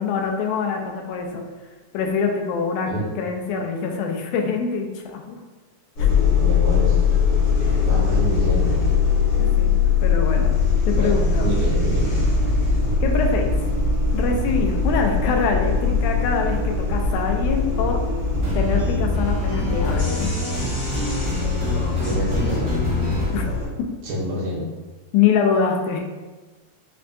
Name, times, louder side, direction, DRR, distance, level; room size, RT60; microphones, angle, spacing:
voice 1, 0.0-1.4 1.9-2.9 3.2-5.4 6.1-6.2 7.6-7.9 9.4-9.7 10.0-10.5 10.9-11.5 13.0-13.5 14.1-18.0 18.5-20.3 23.3-23.5 23.8-23.9 25.1-26.0, left 5 dB, 85° left, 2 dB, 2.0 m, -24 dB
Subway Paris, 6.0-23.7, left 5 dB, 60° left, 1.6 m, -21 dB
voice 2, 6.4-7.0 7.9-8.8 10.9-12.1 22.0-22.8 24.0-24.6, equal, 70° right, -5 dB, 2.0 m, -27 dB
sound 1, 18.3-23.3, left 1 dB, 55° right, 0.9 m, -26 dB
5.2 x 2.2 x 2.5 m, 1.2 s
omnidirectional pair, 3.5 m